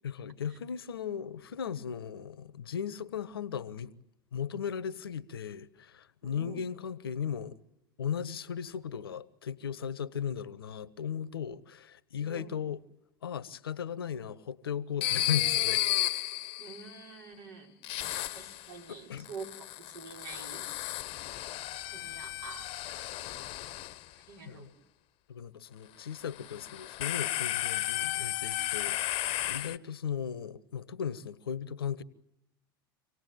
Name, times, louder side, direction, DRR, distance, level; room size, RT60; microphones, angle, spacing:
voice 1, 0.0-3.9 4.3-7.6 8.0-12.8 13.2-15.9 18.0-18.1 19.1-19.3 24.4-24.7 25.3-32.0, left 8 dB, 80° left, 1.0 m, -37 dB
voice 2, 6.2-6.6 12.1-12.5 16.6-20.8 21.9-22.7 23.0-23.1 24.1-24.7, right 5 dB, 70° right, 5.5 m, -47 dB
sound 1, 15.0-17.0 17.8-18.8 19.2-24.0 26.2-29.8, left 15 dB, 50° left, 0.9 m, -33 dB
26.0 x 18.0 x 9.3 m
hypercardioid pair, 85°, 12 cm